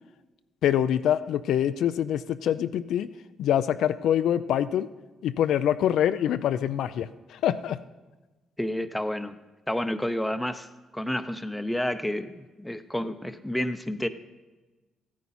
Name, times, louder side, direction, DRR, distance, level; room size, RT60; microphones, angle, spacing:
voice 1, 0.6-3.1 3.4-4.9 5.2-7.8, left 10 dB, 80° left, 12 dB, 0.4 m, -25 dB
voice 2, 8.6-9.4 9.7-10.7 10.9-14.1, left 1 dB, 5° left, 10 dB, 0.7 m, -30 dB
14.5 x 9.4 x 4.2 m, 1.2 s
cardioid pair, 90°, 0 cm